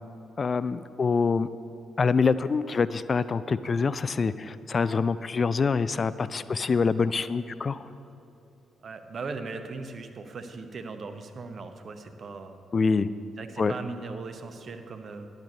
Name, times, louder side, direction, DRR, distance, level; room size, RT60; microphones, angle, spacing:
voice 1, 0.4-1.5 2.0-7.9 12.7-13.1 13.6-13.7, left 5 dB, 40° left, 15 dB, 0.3 m, -25 dB
voice 2, 8.8-12.6 13.4-15.3, right 4 dB, 50° right, 7 dB, 0.8 m, -38 dB
10.5 x 8.0 x 5.3 m, 2.8 s
figure-of-eight pair, 40°, 0 cm